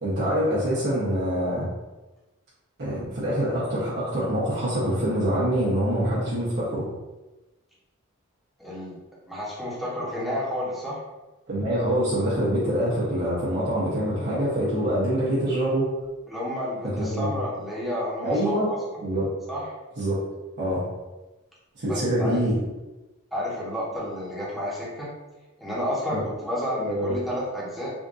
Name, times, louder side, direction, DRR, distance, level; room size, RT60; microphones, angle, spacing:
voice 1, 0.0-1.7 2.8-6.9 11.5-15.9 17.0-17.3 18.2-18.7 19.0-19.3 20.0-20.2 20.6-20.8 21.8-22.6 26.1-26.3 26.7-27.1, equal, 55° right, -8 dB, 0.9 m, -25 dB
voice 2, 8.6-9.0 9.3-11.0 16.3-18.8 19.5-19.7 21.9-22.4 23.3-25.1 25.6-27.9, equal, ahead, -8 dB, 1.0 m, -31 dB
3.6 x 2.5 x 2.5 m, 1.1 s
head